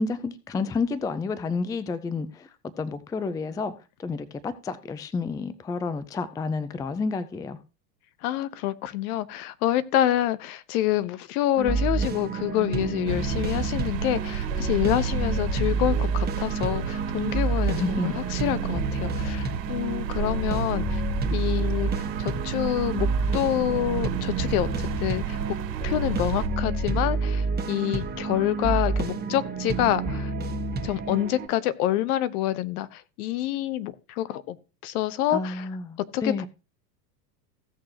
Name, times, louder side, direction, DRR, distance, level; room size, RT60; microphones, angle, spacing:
voice 1, 0.0-3.7 4.0-7.6 17.7-18.1 35.3-36.5, left 4 dB, 10° left, 0.4 m, -30 dB
voice 2, 8.2-21.0 21.3-25.6 25.8-30.3 30.8-34.6 34.8-35.7 36.0-36.5, left 13 dB, 60° left, 1.1 m, -27 dB
sound 1, 11.6-31.5, right 3 dB, 20° right, 1.7 m, -29 dB
sound 2, 13.1-26.5, right 10 dB, 75° right, 2.0 m, -33 dB
16.0 x 6.5 x 2.9 m
hypercardioid pair, 100°, 49 cm